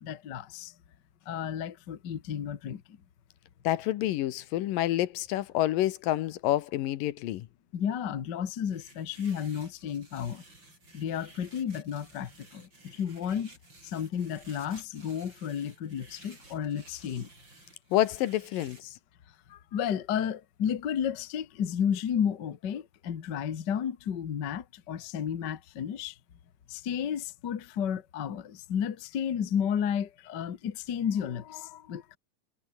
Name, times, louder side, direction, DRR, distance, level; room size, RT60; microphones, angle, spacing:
voice 1, 0.0-0.7 1.2-3.0 7.7-10.4 10.9-13.5 13.8-17.3 19.5-26.2 26.7-32.2, left 8 dB, 50° left, 1.3 m, -32 dB
voice 2, 3.6-7.5 17.9-18.9, left 14 dB, 75° left, 2.6 m, -28 dB
sound 1, 8.7-18.8, right 2 dB, 30° right, 8.2 m, -55 dB
omnidirectional pair, 4.1 m